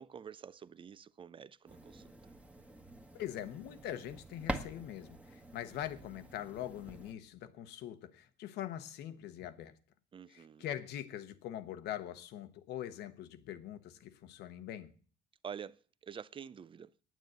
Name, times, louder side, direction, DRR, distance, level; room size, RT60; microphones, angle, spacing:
voice 1, 0.0-2.3 10.1-10.6 15.4-16.9, right 7 dB, 30° right, 0.5 m, -48 dB
sound 1, 1.7-7.1, right 1 dB, 5° right, 1.4 m, -46 dB
voice 2, 3.1-9.7 10.3-14.9, left 11 dB, 80° left, 1.2 m, -43 dB
9.4 x 9.1 x 7.9 m
cardioid pair, 110°, 17 cm